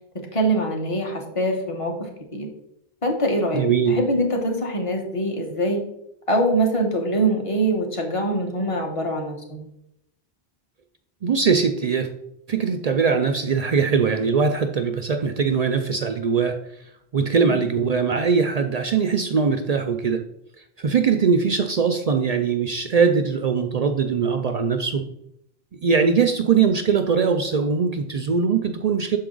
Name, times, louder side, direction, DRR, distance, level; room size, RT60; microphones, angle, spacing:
voice 1, 0.1-2.5 3.0-3.6 3.9-5.8 6.3-9.6, right 1 dB, 30° left, 2 dB, 1.2 m, -24 dB
voice 2, 3.5-3.9 11.2-12.1 12.5-16.6 17.1-20.2 20.8-25.0 25.8-29.2, right 5 dB, 55° right, 6 dB, 0.5 m, -21 dB
6.8 x 4.7 x 3.8 m, 0.78 s
omnidirectional pair, 1.1 m